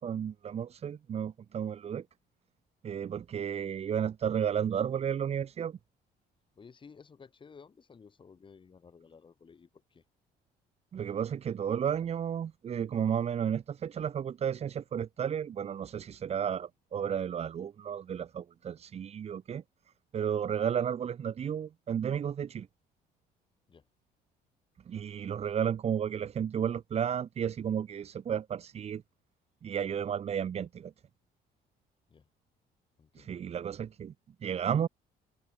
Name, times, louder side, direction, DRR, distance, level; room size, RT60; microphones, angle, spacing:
voice 1, 0.0-2.0 2.8-5.8 10.9-19.6 20.1-22.7 24.9-29.0 29.6-30.9 33.2-34.1 34.4-34.9, right 8 dB, 40° right, 0.8 m, -33 dB
voice 2, 6.6-10.0 23.7-23.9 32.1-32.3 33.0-33.4, left 5 dB, 30° left, 2.5 m, -55 dB
cardioid pair, 110°, 17 cm